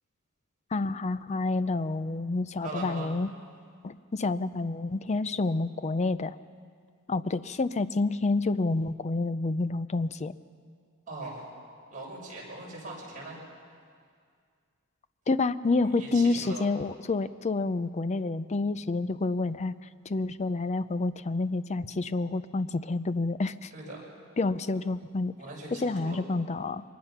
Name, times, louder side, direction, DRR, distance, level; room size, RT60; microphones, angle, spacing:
voice 1, 0.7-3.3 3.8-6.4 7.1-10.3 15.3-19.8 20.1-23.7 24.4-25.3 25.8-26.8, left 3 dB, 30° left, 14 dB, 0.5 m, -28 dB
voice 2, 2.6-3.1 11.1-11.5 11.9-13.4 15.7-16.7 23.7-24.0 24.6-24.8 25.4-26.2, right 2 dB, 40° right, -4 dB, 6.4 m, -41 dB
23.5 x 20.0 x 5.9 m, 2.1 s
head